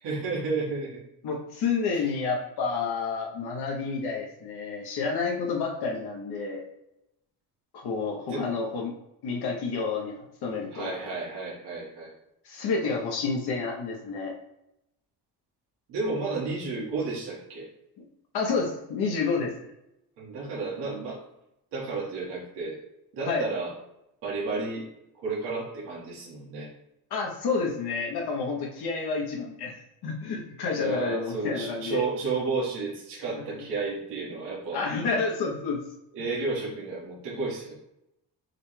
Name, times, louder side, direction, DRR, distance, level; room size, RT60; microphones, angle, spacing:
voice 1, 0.0-1.0 1.9-2.0 8.3-8.5 10.7-12.1 15.9-17.7 20.2-21.2 21.7-22.8 23.1-23.7 24.2-24.9 25.2-26.7 30.8-34.8 36.1-37.8, right 3 dB, 80° right, -6 dB, 1.5 m, -32 dB
voice 2, 1.2-6.6 7.7-8.9 9.2-10.9 12.4-14.4 18.3-19.5 23.2-23.5 27.1-29.8 30.0-32.0 33.3-33.6 34.7-35.8, left 4 dB, 70° left, 0 dB, 0.9 m, -29 dB
6.4 x 2.2 x 3.2 m, 0.84 s
cardioid pair, 145°, 40 cm